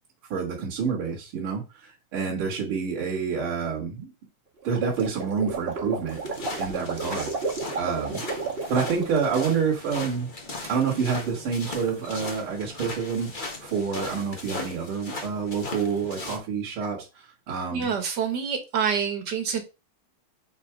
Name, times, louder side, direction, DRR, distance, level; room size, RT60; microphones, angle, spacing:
voice 1, 0.3-4.1 4.6-6.2 6.6-7.3 7.7-8.2 8.7-10.3 10.7-17.9, right 6 dB, 85° right, 2.6 m, -28 dB
sound 1, 4.6-9.5, right 4 dB, 35° right, 1.2 m, -32 dB
sound 2, 6.1-16.4, left 3 dB, 30° left, 1.0 m, -38 dB
voice 2, 17.7-19.6, right 7 dB, 55° right, 1.7 m, -27 dB
5.2 x 4.2 x 4.8 m
omnidirectional pair, 2.3 m